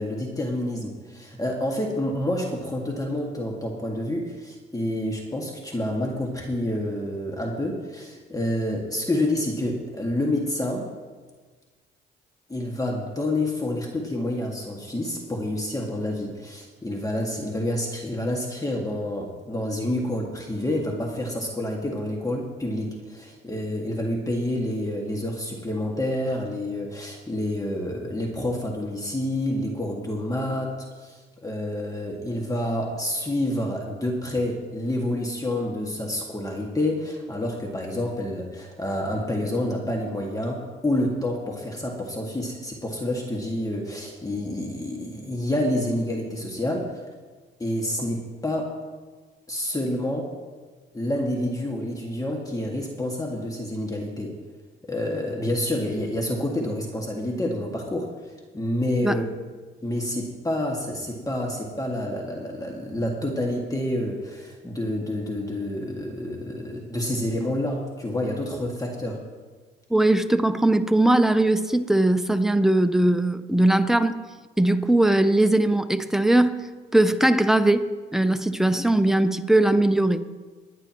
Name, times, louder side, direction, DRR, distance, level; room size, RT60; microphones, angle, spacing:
voice 1, 0.0-10.9 12.5-47.0 47.6-48.7 49.5-50.3 50.9-54.4 54.9-59.2 59.8-69.2, left 1 dB, 15° left, -1 dB, 2.0 m, -28 dB
voice 2, 69.9-74.2 74.6-76.6 76.9-80.3, right 1 dB, ahead, 9 dB, 0.7 m, -20 dB
24.0 x 9.6 x 3.1 m, 1.4 s
cardioid pair, 90°, 20 cm